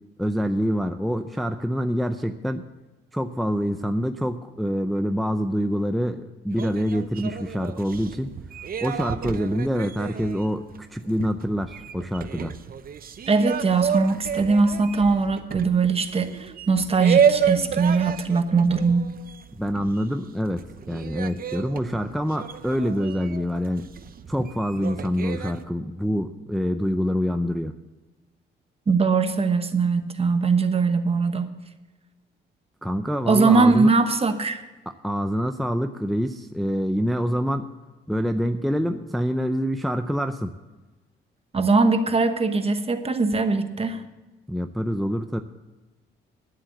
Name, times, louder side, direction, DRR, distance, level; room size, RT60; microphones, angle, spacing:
voice 1, 0.2-2.6 3.1-8.3 8.8-12.5 19.5-23.9 24.3-27.7 32.8-33.9 35.0-37.7 38.1-40.6 44.5-45.4, equal, ahead, 7 dB, 0.5 m, -26 dB
sound 1, 6.5-20.3 20.5-25.6, right 7 dB, 45° right, 0.8 m, -30 dB
voice 2, 13.3-19.1 28.9-31.5 33.3-34.6 41.5-44.0, right 4 dB, 30° right, 8 dB, 1.1 m, -21 dB
11.0 x 7.6 x 8.0 m, 1.1 s
cardioid pair, 90°, 20 cm